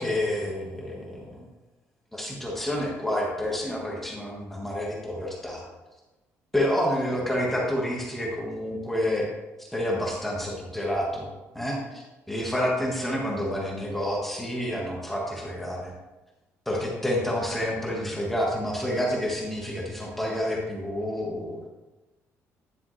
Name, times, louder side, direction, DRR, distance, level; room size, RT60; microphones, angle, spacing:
voice 1, 0.0-1.4 2.1-5.6 6.5-9.3 9.7-15.9 16.6-21.7, left 1 dB, 5° left, -3 dB, 1.5 m, -29 dB
10.0 x 7.1 x 3.2 m, 1.1 s
cardioid pair, 165°, 5 cm